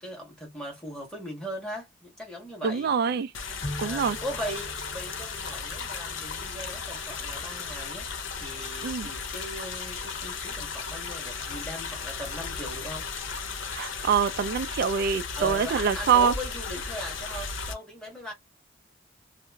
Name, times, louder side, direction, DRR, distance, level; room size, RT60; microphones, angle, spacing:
voice 1, 0.0-2.9 3.8-8.1 8.4-13.1 15.3-18.3, equal, 5° left, 1.4 m, -39 dB
voice 2, 2.6-3.3 3.8-4.2 8.8-9.1 13.7-16.3, right 7 dB, 55° right, 0.3 m, -25 dB
sound 1, 3.3-17.7, left 5 dB, 75° left, 0.6 m, -35 dB
Bowed string instrument, 3.6-7.3, left 1 dB, 30° left, 1.6 m, -42 dB
2.9 x 2.5 x 2.2 m
head